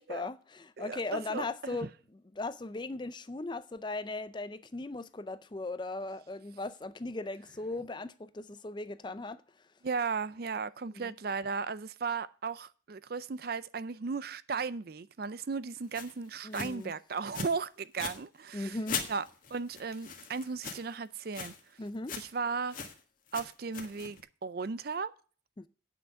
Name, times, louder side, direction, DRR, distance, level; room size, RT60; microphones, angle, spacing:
voice 1, 0.0-1.9 2.3-9.4 11.0-11.1 16.4-16.9 18.5-19.1 21.8-22.2 25.6-25.7, left 2 dB, 25° left, 0.4 m, -38 dB
voice 2, 0.8-1.9 9.8-18.8 19.1-19.2 19.5-21.5 22.2-22.8 23.3-25.1, right 5 dB, 50° right, 0.4 m, -36 dB
sound 1, 15.9-16.1 16.5-16.8 17.3-17.6 17.8-18.2 18.9-21.0 21.3-21.6 21.9-22.4 22.7-23.0 23.3-24.2, left 6 dB, 45° left, 1.6 m, -40 dB
9.0 x 5.9 x 7.9 m
head